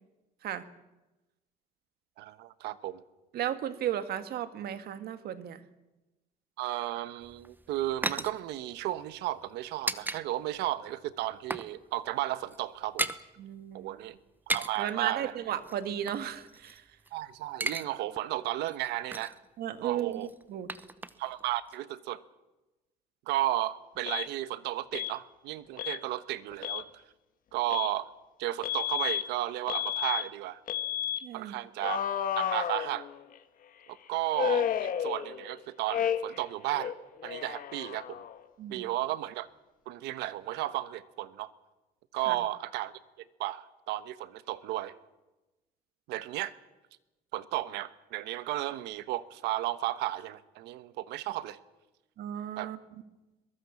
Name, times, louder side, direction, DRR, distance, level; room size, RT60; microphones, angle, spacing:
voice 1, 2.2-3.0 6.6-13.1 13.7-14.2 14.5-15.3 17.1-19.4 19.8-20.3 21.2-22.2 23.3-27.0 27.5-28.1 28.4-30.6 31.3-32.0 32.4-33.1 33.9-36.9 37.2-38.2 38.7-39.5 39.9-41.5 42.1-42.9 43.4-45.0 46.1-46.5 47.3-51.6 52.6-52.7, right 15 dB, 90° right, 14 dB, 1.2 m, -34 dB
voice 2, 3.3-5.6 13.4-13.9 14.8-16.8 19.6-20.7 31.2-31.6 38.6-38.9 42.3-42.4 52.2-52.8, right 10 dB, 65° right, 11 dB, 1.8 m, -35 dB
sound 1, 7.2-10.2 10.5-10.7 11.0-11.7 12.0-12.1 12.4-13.2 14.3-14.9 15.6-17.1 17.4-17.9 18.2-18.3 18.6-19.4 20.1-21.4 21.7-21.8, right 2 dB, 10° right, 1.0 m, -36 dB
Alarm, 24.1-24.3 24.9-25.1 25.8-26.0 26.5-26.8 27.7-27.9 28.6-29.2 29.7-30.2 30.7-31.2 31.8-33.4 34.3-35.5 35.9-36.4 36.7-38.4, left 10 dB, 55° left, 1.5 m, -32 dB
22.5 x 22.0 x 7.2 m, 1.1 s
cardioid pair, 110°, 17 cm